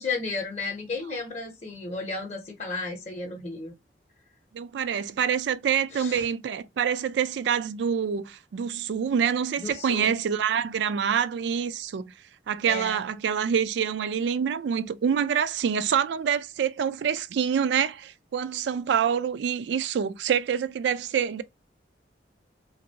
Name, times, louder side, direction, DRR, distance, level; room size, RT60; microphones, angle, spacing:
voice 1, 0.0-3.7 5.9-6.3 9.6-10.2 12.7-13.1, left 3 dB, 40° left, 0.7 m, -33 dB
voice 2, 4.5-12.1 12.5-21.4, right 7 dB, 75° right, 0.3 m, -26 dB
2.9 x 2.6 x 2.7 m
head